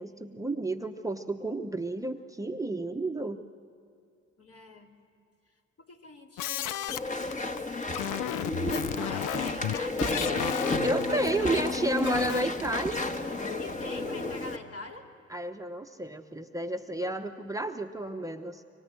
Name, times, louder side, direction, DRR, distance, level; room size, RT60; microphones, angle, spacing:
voice 1, 0.0-3.4 10.8-13.1 15.3-18.6, right 2 dB, 10° right, 5 dB, 0.9 m, -31 dB
voice 2, 4.4-4.9 5.8-8.4 8.9-10.6 11.1-11.9 13.6-15.1, left 2 dB, 50° left, 1 dB, 3.1 m, -44 dB
sound 1, 6.4-12.4, left 12 dB, 90° left, 0.5 m, -34 dB
Walk footsteps / Chatter / Squeak, 6.9-14.6, left 2 dB, 25° left, 1.5 m, -32 dB
25.5 x 24.5 x 7.7 m, 2.6 s
cardioid pair, 90°, 30 cm